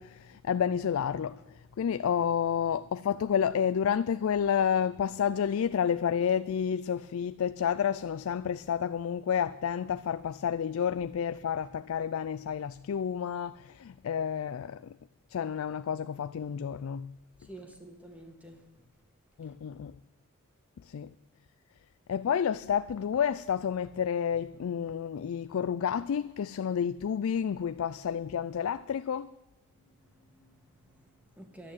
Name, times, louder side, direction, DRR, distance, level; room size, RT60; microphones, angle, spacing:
voice 1, 0.0-15.0 15.3-17.2 19.4-20.0 20.8-21.1 22.1-29.3, left 8 dB, 70° left, 0.3 m, -30 dB
voice 2, 17.4-18.6 19.4-19.5 29.7-31.7, right 1 dB, 5° right, 1.8 m, -51 dB
11.5 x 8.8 x 8.3 m
head